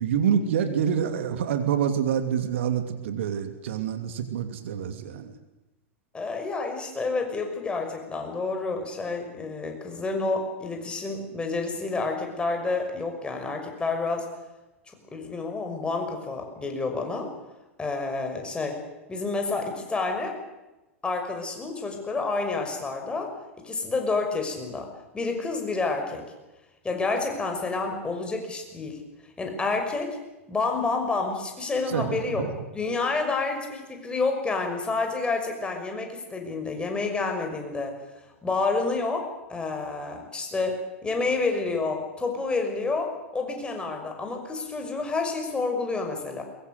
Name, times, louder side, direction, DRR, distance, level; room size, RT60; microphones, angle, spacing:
voice 1, 0.0-5.3 31.8-32.5, right 8 dB, 60° right, 8 dB, 2.7 m, -27 dB
voice 2, 6.1-14.3 15.1-17.3 17.8-18.8 19.1-20.4 21.0-23.3 23.6-26.2 26.8-29.0 29.4-30.2 30.5-32.4 32.7-38.0 38.4-46.4, left 3 dB, 15° left, 3 dB, 5.9 m, -29 dB
22.5 x 22.5 x 8.0 m, 1.0 s
figure-of-eight pair, 95°, 7 cm